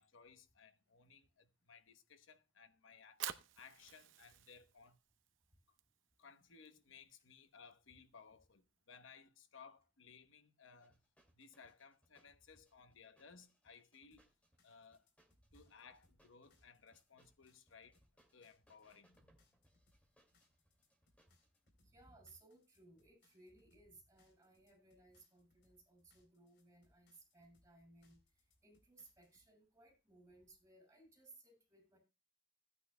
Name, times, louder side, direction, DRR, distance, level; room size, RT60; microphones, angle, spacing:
voice 1, 0.0-3.2 3.5-5.0 6.2-11.0 11.3-14.3 14.6-15.1 15.5-18.0 18.3-19.2, left 5 dB, 90° left, 1.0 m, -61 dB
Fire, 2.9-9.1, right 10 dB, 75° right, 0.7 m, -52 dB
sound 1, 10.8-21.7, equal, 5° left, 2.2 m, -75 dB
sound 2, 14.1-29.5, left 2 dB, 60° left, 3.6 m, -77 dB
voice 2, 21.8-28.2 28.6-32.0, right 2 dB, 15° right, 6.9 m, -64 dB
17.0 x 9.5 x 2.2 m
head